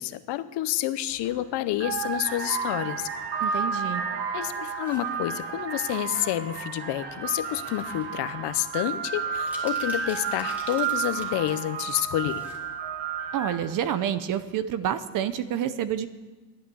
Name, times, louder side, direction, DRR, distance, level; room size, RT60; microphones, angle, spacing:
voice 1, 0.0-3.1 4.3-12.4, left 14 dB, 70° left, 13 dB, 0.8 m, -29 dB
sound 1, 1.1-1.3 1.7-13.8, right 6 dB, 75° right, 1.7 m, -32 dB
voice 2, 3.4-4.0 13.3-16.1, right 10 dB, 50° right, 13 dB, 0.8 m, -28 dB
sound 2, 4.3-5.1 5.9-6.1 7.4-8.1 8.5-8.6 9.1-11.5 11.8-12.6 12.9-13.0, left 2 dB, 5° right, 2.4 m, -47 dB
13.5 x 11.0 x 7.0 m, 1.2 s
cardioid pair, 180°, 43 cm